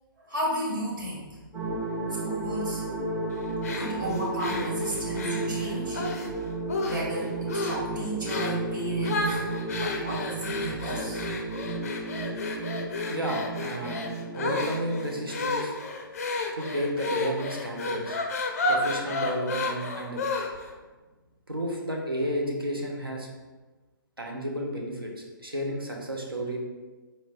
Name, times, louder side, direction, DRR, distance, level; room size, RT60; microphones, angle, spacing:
voice 1, 0.2-1.4 2.2-2.8 3.7-6.0 6.8-9.5 9.8-11.3, equal, 60° right, -4 dB, 1.4 m, -33 dB
sound 1, 1.5-15.4, right 2 dB, 15° right, 0.7 m, -33 dB
sound 2, 3.6-6.3 6.7-7.2 7.5-7.9 8.3-8.6 9.0-20.7, left 3 dB, 40° left, 0.4 m, -32 dB
voice 2, 13.1-15.8 16.5-18.2 18.7-20.2 21.5-23.3 24.2-25.1 25.4-26.6, equal, 85° right, -1 dB, 0.8 m, -32 dB
4.3 x 2.9 x 2.5 m, 1.2 s
figure-of-eight pair, 130°, 12 cm